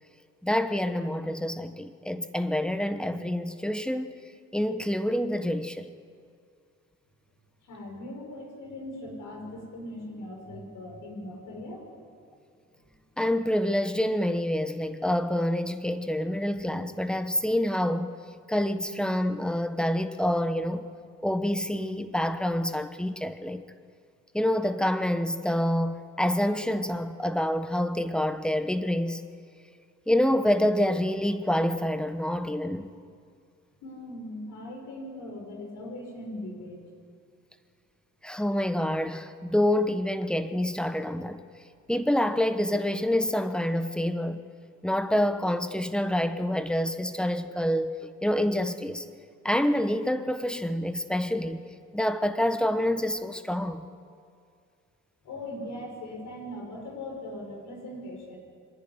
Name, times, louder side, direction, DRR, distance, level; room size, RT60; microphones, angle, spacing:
voice 1, 0.4-4.2 4.5-5.9 13.2-18.1 18.5-20.9 21.2-23.6 24.3-29.2 30.1-32.9 38.2-41.4 41.9-44.4 44.8-49.0 49.4-51.6 51.9-53.9, left 1 dB, 5° left, 1.1 m, -27 dB
voice 2, 7.6-11.9 33.8-36.8 55.2-58.4, left 1 dB, 80° left, 5.8 m, -40 dB
25.0 x 10.5 x 9.7 m
cardioid pair, 90°, 30 cm